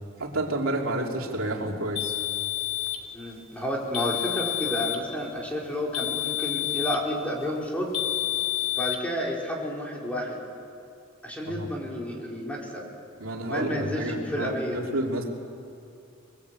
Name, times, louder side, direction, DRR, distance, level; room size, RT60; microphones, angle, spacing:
voice 1, 0.2-2.2 11.5-11.7 13.2-15.2, right 1 dB, 85° right, 0 dB, 3.0 m, -30 dB
sound 1, 2.0-3.1 3.9-5.1 5.9-7.1 7.9-9.0, left 15 dB, 75° left, 2.8 m, -29 dB
voice 2, 3.1-7.9 8.8-10.4 11.2-12.9 13.4-14.8, equal, 5° left, -2 dB, 4.7 m, -31 dB
28.5 x 22.0 x 8.4 m, 2.5 s
head